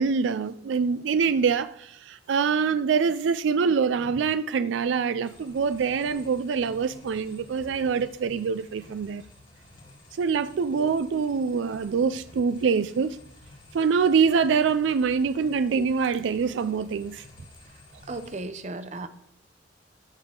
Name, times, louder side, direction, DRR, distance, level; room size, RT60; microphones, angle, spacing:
voice 1, 0.0-9.2 10.2-13.2 13.7-17.2, right 5 dB, 80° right, 0.4 m, -25 dB
sound 1, 5.2-18.4, left 2 dB, 50° left, 3.7 m, -52 dB
voice 2, 17.6-19.1, right 2 dB, 40° right, 0.6 m, -36 dB
13.5 x 5.5 x 3.7 m
head